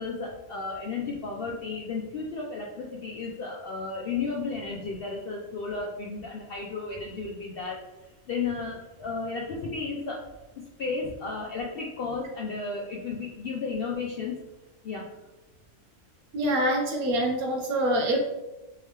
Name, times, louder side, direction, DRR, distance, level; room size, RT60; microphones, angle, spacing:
voice 1, 0.0-7.8 8.3-10.2 10.6-14.4 14.8-15.1, left 4 dB, 70° left, -1 dB, 0.5 m, -33 dB
voice 2, 16.3-18.2, right 1 dB, 90° right, 1 dB, 1.3 m, -25 dB
3.5 x 3.2 x 3.2 m, 1.0 s
omnidirectional pair, 1.5 m